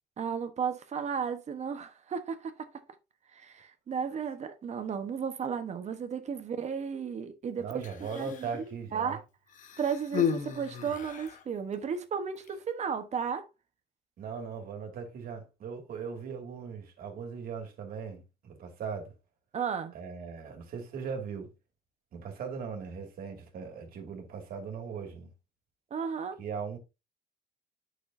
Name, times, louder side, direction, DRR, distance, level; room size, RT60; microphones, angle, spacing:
voice 1, 0.2-2.7 3.3-7.9 8.1-8.6 8.9-9.2 9.8-13.5 19.5-19.9 25.9-26.4, right 6 dB, 40° right, 1.2 m, -34 dB
voice 2, 7.6-9.2 14.2-19.1 19.9-21.5 22.1-25.3 26.4-26.8, right 6 dB, 60° right, 2.5 m, -39 dB
Human voice, 7.7-8.6 9.5-11.4 12.4-12.5, left 7 dB, 50° left, 1.2 m, -34 dB
8.6 x 6.3 x 2.8 m
cardioid pair, 110°, 17 cm